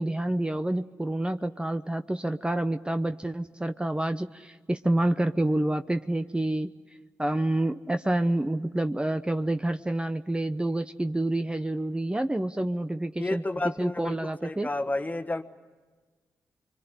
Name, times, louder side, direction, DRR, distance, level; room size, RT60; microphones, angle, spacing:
voice 1, 0.0-6.7 7.2-13.4 13.8-14.7, right 1 dB, 15° right, 9 dB, 0.8 m, -28 dB
voice 2, 13.2-15.4, left 2 dB, 25° left, 7 dB, 1.6 m, -31 dB
25.5 x 23.0 x 9.7 m, 1.4 s
supercardioid pair, 45°, 6 cm